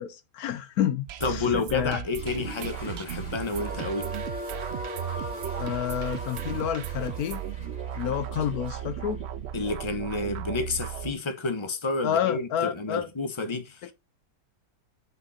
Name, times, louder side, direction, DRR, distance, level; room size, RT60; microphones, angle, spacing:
voice 1, 0.0-2.0 5.6-7.4 8.0-9.2 12.0-13.1, left 10 dB, 75° left, 1.1 m, -29 dB
sound 1, 1.1-11.1, right 10 dB, 70° right, 0.6 m, -36 dB
voice 2, 1.2-4.1 9.5-13.9, left 3 dB, 20° left, 1.1 m, -30 dB
Water / Toilet flush, 2.0-9.8, equal, 50° left, 5.1 m, -48 dB
sound 2, 3.5-8.7, equal, 5° right, 2.3 m, -39 dB
8.0 x 5.7 x 4.1 m
omnidirectional pair, 1.7 m